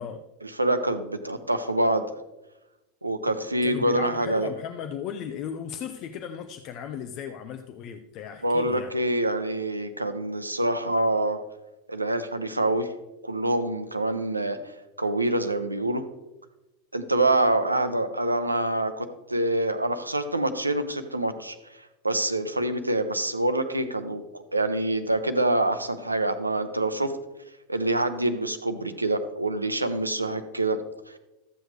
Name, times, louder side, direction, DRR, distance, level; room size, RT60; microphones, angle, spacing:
voice 1, 0.4-2.0 3.0-4.5 8.4-11.4 11.9-12.9 13.2-14.6 15.0-16.0 16.9-21.6 22.0-27.1 27.7-30.8, right 1 dB, 85° right, 9 dB, 0.7 m, -26 dB
voice 2, 3.3-8.9, left 8 dB, 45° left, 7 dB, 0.6 m, -36 dB
13.5 x 7.7 x 3.2 m, 1.0 s
figure-of-eight pair, 85°, 0 cm